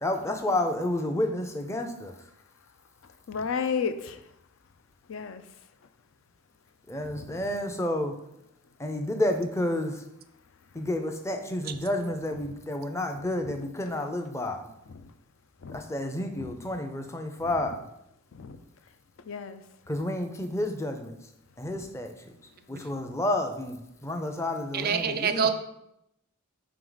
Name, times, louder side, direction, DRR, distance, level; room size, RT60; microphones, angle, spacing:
voice 1, 0.0-2.2 6.9-8.1 8.8-10.0 10.7-14.6 15.7-17.8 19.9-21.2 21.6-22.1 22.7-25.5, left 1 dB, 15° left, 6 dB, 0.5 m, -30 dB
voice 2, 3.3-4.2 5.1-5.4 7.1-7.3 15.6-15.8 16.4-16.5 18.4-18.6 19.3-19.6, left 6 dB, 65° left, 10 dB, 0.4 m, -32 dB
voice 3, 24.7-25.5, right 6 dB, 45° right, 9 dB, 0.4 m, -26 dB
5.1 x 4.7 x 3.9 m, 0.81 s
head